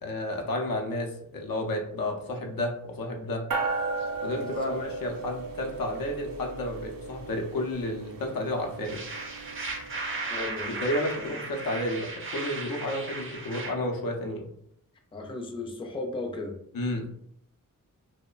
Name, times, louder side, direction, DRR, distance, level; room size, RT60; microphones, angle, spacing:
voice 1, 0.0-3.4 4.2-9.0 10.7-14.5 16.7-17.1, left 1 dB, 90° left, 2 dB, 0.6 m, -31 dB
sound 1, 3.5-11.2, right 3 dB, 85° right, 0.5 m, -36 dB
voice 2, 4.3-4.8 10.3-10.8 11.3-11.4 15.1-16.6, left 2 dB, 15° left, 2 dB, 0.3 m, -36 dB
sound 2, 8.8-13.7, right 3 dB, 40° right, 0.5 m, -36 dB
2.8 x 2.0 x 2.3 m, 0.73 s
wide cardioid pair, 100°, 34 cm